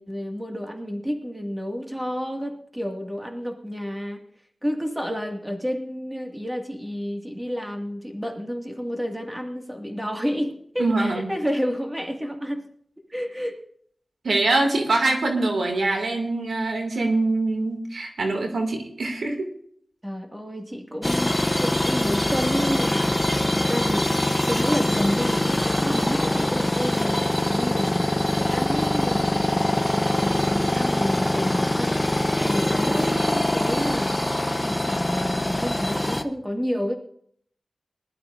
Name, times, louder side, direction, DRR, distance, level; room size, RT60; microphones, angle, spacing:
voice 1, 0.0-4.2 4.6-12.7 13.1-13.6 20.0-24.2 24.5-28.1 28.4-34.2 34.6-37.0, equal, 10° right, 3 dB, 2.1 m, -30 dB
voice 2, 10.8-11.3 14.2-19.5, right 2 dB, 85° right, 2 dB, 2.4 m, -24 dB
sound 1, 21.0-36.2, left 1 dB, 20° left, 0.9 m, -23 dB
20.0 x 12.0 x 2.6 m, 0.62 s
wide cardioid pair, 60°, 0 cm